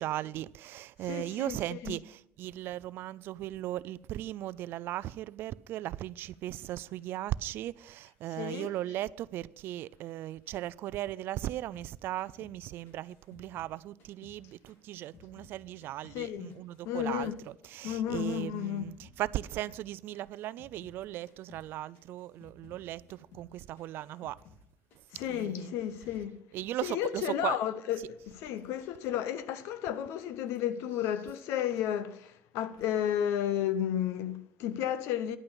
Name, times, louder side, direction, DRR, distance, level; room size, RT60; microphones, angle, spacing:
voice 1, 0.0-24.4 25.3-25.8 26.5-27.6, right 14 dB, 55° right, 0.3 m, -37 dB
voice 2, 1.0-2.0 8.3-8.7 16.1-16.5 16.8-17.4 17.8-18.9 25.1-26.3 26.8-35.4, left 10 dB, 90° left, 0.8 m, -33 dB
sound 1, 11.7-14.4 14.7-17.4 17.6-21.0 21.3-21.7 21.9-24.7 24.9-25.3 25.6-26.2, left 4 dB, 65° left, 2.3 m, -58 dB
10.5 x 8.8 x 5.4 m
cardioid pair, 175°, 4 cm